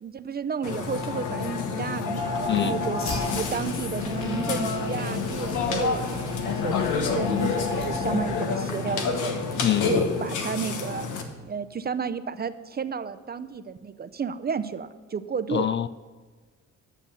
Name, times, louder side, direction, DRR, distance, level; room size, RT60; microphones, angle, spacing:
voice 1, 0.0-3.0 3.3-11.1 11.4-15.7, right 6 dB, 30° right, 12 dB, 0.6 m, -32 dB
Burping eructation, 0.6-11.2, left 4 dB, 90° left, 1.3 m, -28 dB
Fire, 2.3-8.2, left 3 dB, 65° left, 4.0 m, -41 dB
voice 2, 2.4-2.8 9.6-9.9 15.5-15.9, left 10 dB, 40° left, 14 dB, 0.4 m, -25 dB
11.5 x 7.1 x 7.0 m, 1.4 s
cardioid pair, 90°, 30 cm